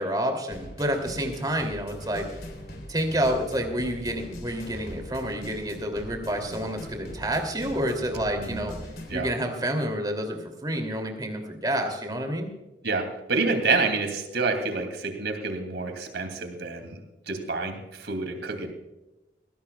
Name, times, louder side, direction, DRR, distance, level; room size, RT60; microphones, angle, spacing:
voice 1, 0.0-2.3 2.9-8.7 9.1-12.5, equal, 20° right, 4 dB, 2.8 m, -29 dB
sound 1, 0.5-9.2, equal, 60° left, 3.4 m, -41 dB
voice 2, 12.8-17.0 17.3-18.7, right 3 dB, 85° right, 6 dB, 2.7 m, -28 dB
20.0 x 17.0 x 2.3 m, 1.0 s
head